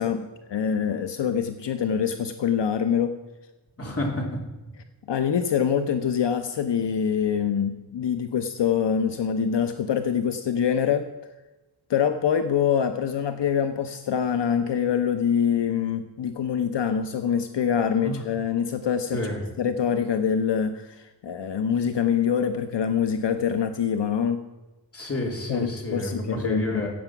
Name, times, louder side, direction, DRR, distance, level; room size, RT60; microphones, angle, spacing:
voice 1, 0.0-3.2 5.1-11.1 11.9-19.2 19.6-24.4 25.5-26.9, left 7 dB, 80° left, 8 dB, 0.8 m, -25 dB
voice 2, 3.8-4.3 18.0-18.3 19.1-19.4 24.9-26.9, left 1 dB, 35° left, 0 dB, 2.7 m, -30 dB
16.0 x 7.9 x 5.8 m, 1.1 s
wide cardioid pair, 130°, 42 cm